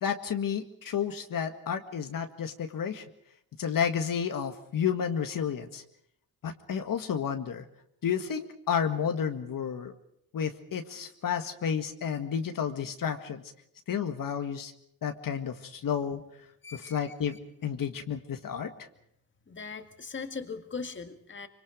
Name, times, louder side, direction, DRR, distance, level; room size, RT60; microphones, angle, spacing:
voice 1, 0.0-3.0 3.6-5.8 6.4-7.6 8.0-9.9 10.3-13.4 13.9-14.7 15.0-16.2 16.7-17.4 17.6-18.7, left 7 dB, 60° left, 6 dB, 1.9 m, -31 dB
voice 2, 16.6-17.4 19.5-21.5, left 5 dB, 30° left, 7 dB, 2.0 m, -40 dB
25.5 x 25.0 x 5.1 m, 0.73 s
cardioid pair, 135°, 38 cm